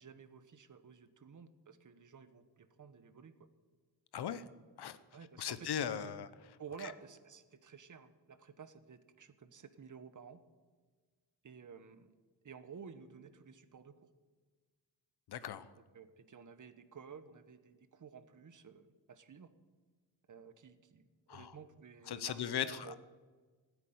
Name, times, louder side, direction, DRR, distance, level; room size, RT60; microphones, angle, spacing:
voice 1, 0.0-3.5 5.1-6.1 6.6-10.4 11.4-12.1 12.4-14.1 15.7-19.5 20.3-23.0, right 6 dB, 50° right, 12 dB, 1.1 m, -53 dB
voice 2, 4.1-4.4 4.8-5.0 5.4-6.3 15.3-15.6 21.3-21.5 22.1-22.9, left 9 dB, 75° left, 14 dB, 0.9 m, -38 dB
14.5 x 8.2 x 9.4 m, 1.4 s
cardioid pair, 75°, 39 cm